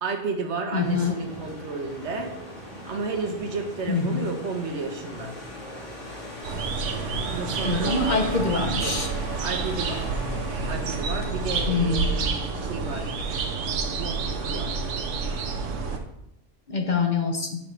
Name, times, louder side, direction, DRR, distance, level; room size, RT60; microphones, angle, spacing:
voice 1, 0.0-2.3 2.8-5.3 7.3-8.1 8.8-8.9 9.4-10.1 10.7-13.2 13.9-14.8, right 4 dB, 70° right, 4 dB, 1.4 m, -32 dB
voice 2, 0.7-1.2 3.9-4.3 7.6-9.1 11.7-12.1 16.7-17.6, left 4 dB, 40° left, 4 dB, 0.9 m, -25 dB
sound 1, 0.8-16.0, left 1 dB, 80° left, 3.0 m, -38 dB
sound 2, 6.4-16.0, right 5 dB, 85° right, 1.1 m, -29 dB
11.5 x 5.9 x 3.3 m, 0.84 s
omnidirectional pair, 1.2 m